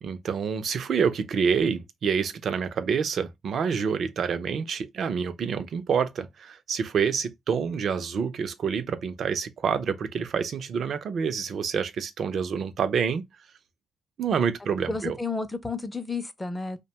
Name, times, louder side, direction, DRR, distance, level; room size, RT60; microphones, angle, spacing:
voice 1, 0.0-13.2 14.2-15.2, right 6 dB, 60° right, 0.5 m, -27 dB
voice 2, 14.9-16.8, left 3 dB, 15° left, 0.5 m, -31 dB
2.6 x 2.2 x 2.8 m
cardioid pair, 90°, 0 cm